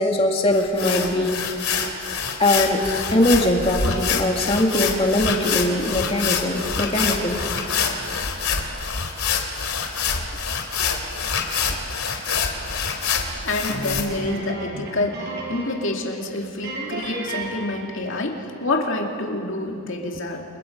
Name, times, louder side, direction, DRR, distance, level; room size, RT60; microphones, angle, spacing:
voice 1, 0.0-1.4 2.4-2.8 3.1-7.4, left 1 dB, 25° left, 1 dB, 2.3 m, -21 dB
sound 1, 0.5-14.0, left 6 dB, 90° left, 2.9 m, -26 dB
voice 2, 13.4-20.4, left 2 dB, 60° left, 1 dB, 2.5 m, -27 dB
sound 2, 13.7-16.3 16.6-18.2, right 2 dB, 50° right, 6.3 m, -33 dB
29.5 x 28.5 x 5.4 m, 2.6 s
head